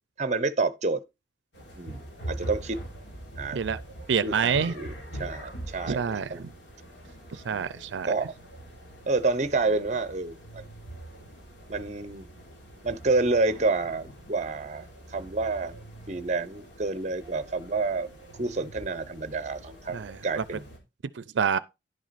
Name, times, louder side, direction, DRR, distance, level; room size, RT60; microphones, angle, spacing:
voice 1, 0.2-1.0 1.7-2.8 3.4-3.6 4.2-6.5 7.5-7.7 8.0-8.3 9.1-10.7 11.7-12.3 12.8-15.8 16.1-18.1 18.3-20.7, right 3 dB, 40° right, 0.7 m, -29 dB
sound 1, 1.5-20.8, right 1 dB, 75° left, 3.6 m, -43 dB
voice 2, 4.1-4.7 5.9-6.5 7.3-8.1 19.9-20.2 21.2-21.6, right 6 dB, 80° right, 0.5 m, -27 dB
10.5 x 6.2 x 4.1 m
head